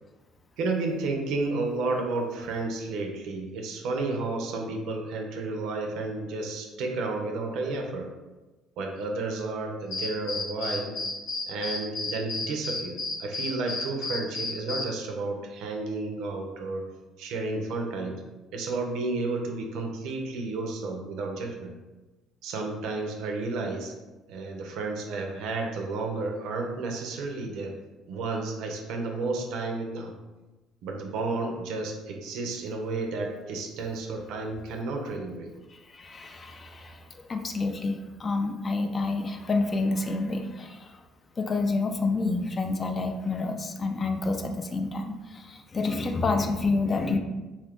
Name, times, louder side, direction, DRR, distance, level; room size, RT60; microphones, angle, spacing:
voice 1, 0.6-8.1 8.8-10.9 11.5-16.8 17.2-18.2 18.5-21.7 22.4-23.9 24.3-27.7 28.1-30.1 30.8-35.5, right 3 dB, 75° right, 2 dB, 0.5 m, -32 dB
sound 1, 9.9-14.8, left 3 dB, 80° left, 0.9 m, -32 dB
voice 2, 36.0-37.0 37.3-40.8 41.4-45.1 45.5-47.2, left 3 dB, 35° left, 5 dB, 0.4 m, -28 dB
2.5 x 2.4 x 3.5 m, 1.1 s
supercardioid pair, 80°, 0 cm